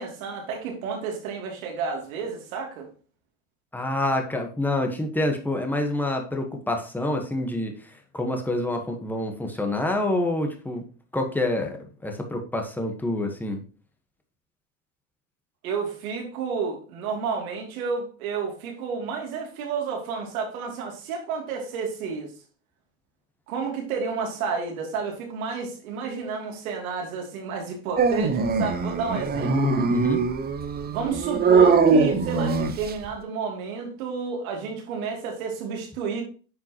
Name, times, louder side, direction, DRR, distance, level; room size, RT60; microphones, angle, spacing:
voice 1, 0.0-2.9 15.6-22.3 23.5-29.5 30.9-36.2, right 5 dB, 85° right, 1 dB, 3.0 m, -31 dB
voice 2, 3.7-7.7 8.1-10.8 11.1-13.6 29.3-30.2, left 1 dB, 5° left, 3 dB, 1.3 m, -27 dB
Dog, 28.0-33.1, right 5 dB, 25° right, 0.7 m, -22 dB
9.4 x 5.7 x 3.0 m, 0.39 s
supercardioid pair, 125°, 41 cm